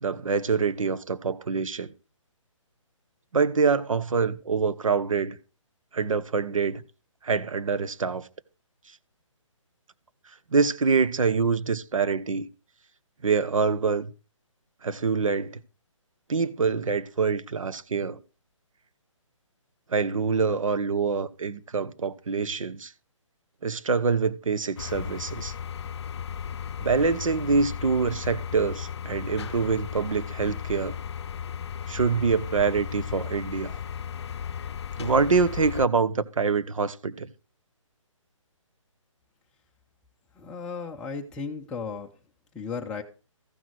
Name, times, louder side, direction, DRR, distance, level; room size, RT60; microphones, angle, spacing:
voice 1, 0.0-1.9 3.3-5.4 5.9-6.8 7.2-8.3 10.5-12.5 13.2-14.1 14.8-15.6 16.3-18.2 19.9-22.9 23.6-25.5 26.8-31.0 31.9-33.7 35.0-37.3, right 5 dB, 80° right, 1.1 m, -25 dB
sound 1, 24.8-35.9, left 8 dB, 55° left, 0.6 m, -35 dB
voice 2, 40.3-42.1 42.5-43.0, left 5 dB, 5° left, 0.5 m, -35 dB
14.5 x 6.1 x 4.7 m
hypercardioid pair, 160°, 17 cm